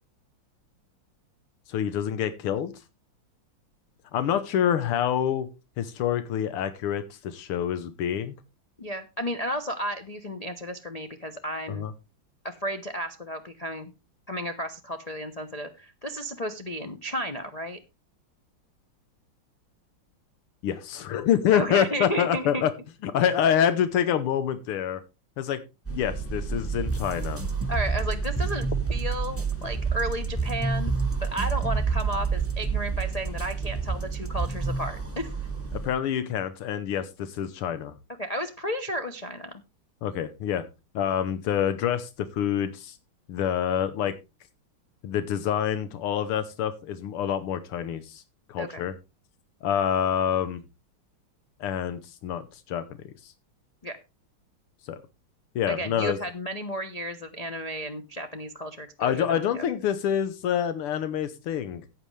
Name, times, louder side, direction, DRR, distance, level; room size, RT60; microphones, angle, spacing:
voice 1, 1.7-2.7 4.1-5.5 5.8-8.4 11.7-11.9 20.6-22.7 23.0-25.0 25.4-25.6 25.9-27.4 35.8-37.9 40.0-40.7 41.0-43.0 43.3-44.2 45.0-48.2 48.5-49.0 49.6-50.6 51.6-53.3 54.9-55.0 55.6-56.2 59.0-61.9, left 9 dB, 85° left, 12 dB, 1.8 m, -27 dB
voice 2, 8.8-11.9 12.4-13.9 14.3-17.8 21.5-22.6 27.7-30.9 31.2-35.3 38.2-39.6 48.6-48.8 53.8-54.0 55.7-59.6, equal, 70° left, 4 dB, 0.3 m, -33 dB
sound 1, 25.9-35.9, right 6 dB, 5° left, 2.0 m, -30 dB
sound 2, 26.9-34.9, right 2 dB, 20° right, 0.3 m, -31 dB
14.5 x 8.7 x 3.2 m, 0.27 s
omnidirectional pair, 2.4 m